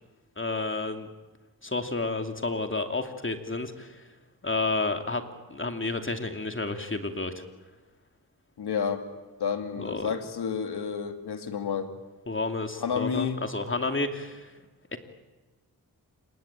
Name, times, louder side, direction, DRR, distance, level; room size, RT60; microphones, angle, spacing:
voice 1, 0.4-1.1 1.6-4.1 4.4-5.2 5.5-7.3 9.8-10.1 12.3-14.5 14.9-15.0, left 3 dB, 30° left, 6 dB, 2.7 m, -30 dB
voice 2, 8.6-9.0 9.4-11.9 12.8-13.4, left 6 dB, 80° left, 7 dB, 2.7 m, -30 dB
26.5 x 22.5 x 9.0 m, 1.2 s
cardioid pair, 50°, 39 cm